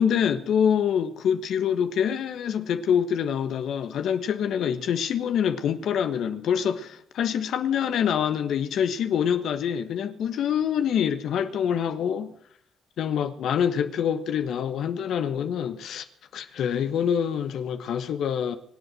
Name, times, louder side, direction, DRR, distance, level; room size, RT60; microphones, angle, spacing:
voice 1, 0.0-12.3 13.0-16.0 16.3-18.5, left 8 dB, 75° left, 1.3 m, -25 dB
25.0 x 8.3 x 6.3 m
cardioid pair, 110°, 0 cm